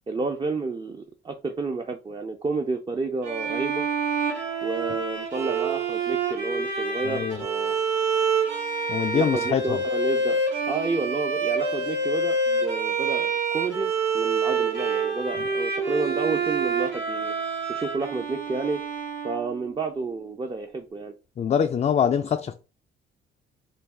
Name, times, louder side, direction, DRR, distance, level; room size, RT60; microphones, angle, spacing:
voice 1, 0.1-3.9 4.6-7.7 9.1-17.4 17.7-18.8 19.2-21.1, right 3 dB, 25° right, 0.5 m, -30 dB
Bowed string instrument, 3.2-19.8, right 4 dB, 75° right, 1.7 m, -27 dB
voice 2, 7.0-7.4 8.9-9.8 15.4-15.5 21.4-22.5, left 8 dB, 35° left, 0.3 m, -24 dB
3.9 x 2.3 x 3.4 m
cardioid pair, 90°, 20 cm